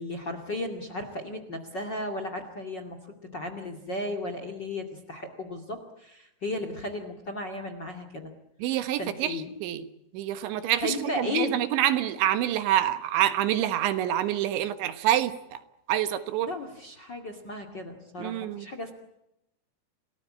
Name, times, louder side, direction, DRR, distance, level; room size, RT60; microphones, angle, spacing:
voice 1, 0.0-3.0 3.3-8.3 9.0-9.5 10.8-11.6 16.4-18.9, left 2 dB, 35° left, 8 dB, 2.1 m, -35 dB
voice 2, 8.6-9.9 10.1-15.6 15.9-16.5 18.2-18.7, right 12 dB, 80° right, 11 dB, 3.7 m, -27 dB
29.0 x 19.0 x 8.7 m, 0.86 s
omnidirectional pair, 5.3 m